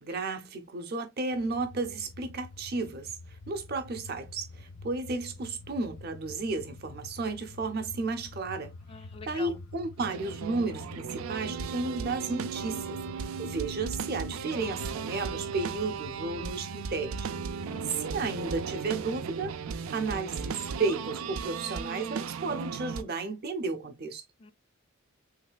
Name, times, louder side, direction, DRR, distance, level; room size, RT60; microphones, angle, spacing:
voice 1, 0.0-3.1 3.5-8.7 9.3-13.0 13.4-17.3 17.6-19.6 19.9-24.2, right 3 dB, 50° right, 0.7 m, -33 dB
sound 1, 1.3-20.8, left 2 dB, 75° left, 0.8 m, -47 dB
voice 2, 8.9-9.6 17.7-18.2 24.4-24.5, left 5 dB, 30° left, 0.3 m, -46 dB
sound 2, 10.0-23.0, right 6 dB, 90° right, 0.4 m, -36 dB
3.2 x 3.1 x 2.2 m
head